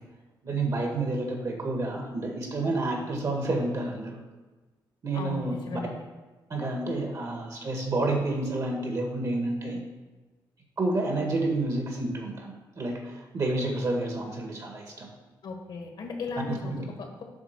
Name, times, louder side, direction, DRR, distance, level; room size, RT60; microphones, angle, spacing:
voice 1, 0.4-4.2 5.0-5.6 6.5-9.8 10.8-15.1 16.6-16.8, right 2 dB, 45° right, 2 dB, 1.5 m, -29 dB
voice 2, 5.1-6.1 15.4-17.2, left 4 dB, 65° left, 2 dB, 1.5 m, -37 dB
7.9 x 3.7 x 6.6 m, 1.2 s
cardioid pair, 105°, 8 cm